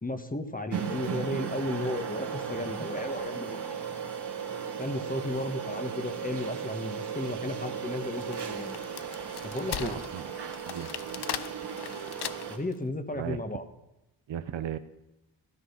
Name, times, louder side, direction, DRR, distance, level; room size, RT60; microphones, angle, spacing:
voice 1, 0.0-3.8 4.8-8.8 9.4-10.0 12.5-13.6, left 1 dB, 20° left, 8 dB, 1.6 m, -34 dB
sound 1, 0.7-12.6, right 7 dB, 65° right, 2.3 m, -36 dB
Wood, 8.0-12.7, left 9 dB, 60° left, 0.8 m, -39 dB
voice 2, 9.8-10.3 10.6-11.1 13.1-13.4 14.3-14.8, right 10 dB, 85° right, 11 dB, 1.0 m, -36 dB
16.5 x 12.5 x 5.8 m, 0.91 s
cardioid pair, 75°, 43 cm